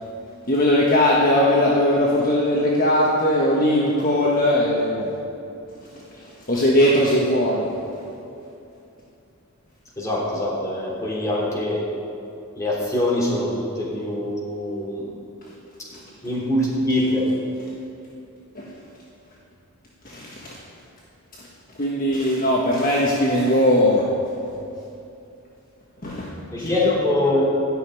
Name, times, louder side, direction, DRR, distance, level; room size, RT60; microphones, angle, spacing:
voice 1, 0.5-5.1 6.5-7.7 18.5-18.7 20.1-20.6 21.8-24.1 26.0-26.3 26.6-26.9, left 1 dB, 40° left, -4 dB, 1.5 m, -19 dB
voice 2, 10.0-11.8 12.6-15.1 16.2-17.3 26.5-27.4, left 1 dB, 15° left, -5 dB, 3.3 m, -23 dB
13.5 x 6.7 x 9.9 m, 2.7 s
head